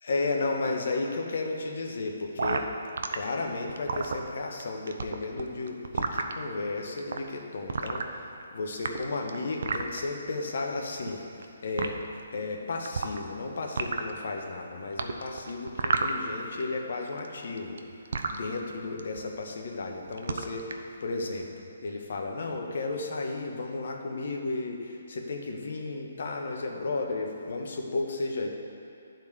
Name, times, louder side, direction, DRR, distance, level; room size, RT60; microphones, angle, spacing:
voice 1, 0.0-2.7 3.1-11.2 11.6-12.0 12.3-17.8 18.3-21.5 21.8-28.5, left 3 dB, 60° left, 2 dB, 1.3 m, -33 dB
sound 1, 2.4-3.2 3.7-4.6 4.9-6.3 7.0-7.2 7.7-8.4 8.7-10.0 10.9-11.5 11.8-11.9 12.9-13.4 13.7-14.2 15.0-16.6 16.9-18.4 19.0-19.2 19.5-19.8 20.1-20.8, right 4 dB, 60° right, 0.7 m, -31 dB
12.0 x 4.4 x 8.1 m, 2.5 s
figure-of-eight pair, 140°, 0 cm